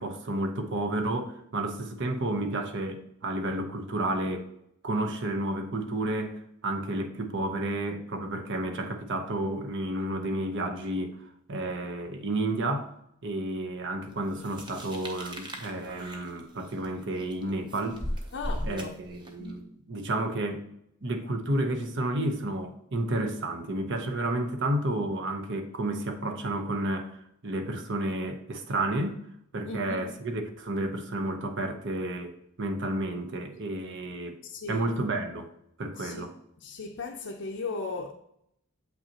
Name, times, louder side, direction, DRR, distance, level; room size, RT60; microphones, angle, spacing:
voice 1, 0.0-4.5 4.8-11.2 11.5-12.9 13.2-18.0 18.6-20.6 21.0-27.1 27.4-29.2 29.5-34.4 34.7-35.5 35.8-36.3, right 1 dB, 55° right, 0.8 m, -31 dB
sound 1, 14.4-19.5, equal, 20° right, 0.9 m, -38 dB
voice 2, 18.3-18.9 19.3-19.6 29.6-30.1 34.4-34.9 35.9-36.3 36.6-38.1, left 3 dB, 60° left, 0.6 m, -37 dB
7.6 x 5.6 x 2.9 m
head